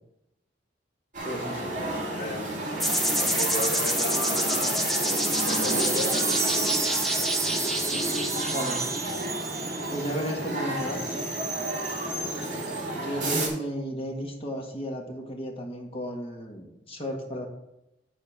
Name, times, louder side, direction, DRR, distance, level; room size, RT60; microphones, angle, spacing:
sound 1, 1.1-13.5, right 1 dB, 45° right, 2.7 m, -31 dB
voice 1, 1.2-1.7 8.5-8.9 9.8-11.3 12.9-17.5, equal, 35° left, 1 dB, 1.6 m, -34 dB
voice 2, 2.2-5.1 5.4-6.2 12.8-13.3, left 1 dB, 55° left, 2 dB, 1.6 m, -35 dB
sound 2, 2.8-9.5, equal, ahead, 0.9 m, -28 dB
Wind chime, 4.2-10.4, right 5 dB, 15° right, 0.4 m, -33 dB
10.0 x 4.4 x 5.8 m, 0.87 s
head